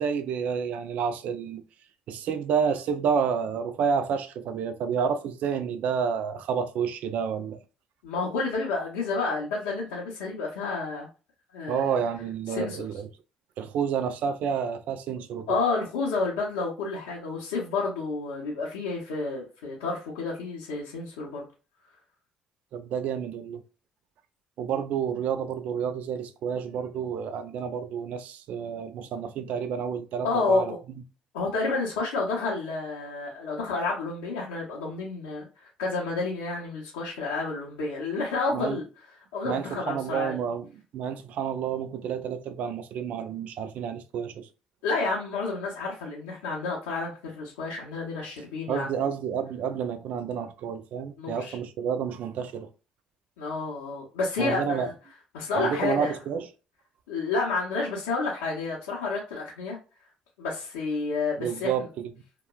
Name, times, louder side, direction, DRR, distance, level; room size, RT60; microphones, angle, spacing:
voice 1, 0.0-1.6 2.1-7.6 11.7-13.1 13.6-15.5 22.7-23.6 24.6-30.7 38.5-38.8 39.4-44.5 48.7-52.7 54.4-54.9 55.6-56.5 61.4-62.1, right 7 dB, 65° right, 0.4 m, -29 dB
voice 2, 8.0-11.1 11.5-12.0 12.5-13.0 15.5-21.5 30.2-30.8 31.3-38.9 39.3-40.4 44.8-49.0 51.2-51.6 53.4-54.9 55.3-56.1 57.1-59.8 60.4-61.9, left 3 dB, 85° left, 0.6 m, -30 dB
2.9 x 2.2 x 2.2 m
hypercardioid pair, 60°, 3 cm